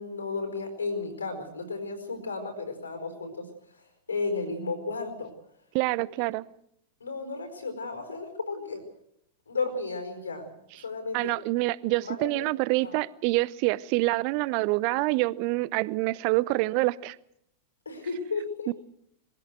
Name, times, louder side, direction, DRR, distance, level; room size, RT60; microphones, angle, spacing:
voice 1, 0.0-5.3 7.0-8.8 9.5-10.5 10.8-11.3 12.1-12.5 12.8-13.0 17.8-18.7, left 4 dB, 75° left, 4.8 m, -34 dB
voice 2, 5.7-6.4 11.1-17.2 18.7-18.8, right 21 dB, 45° right, 0.7 m, -26 dB
23.0 x 16.5 x 8.1 m
figure-of-eight pair, 90°, 0 cm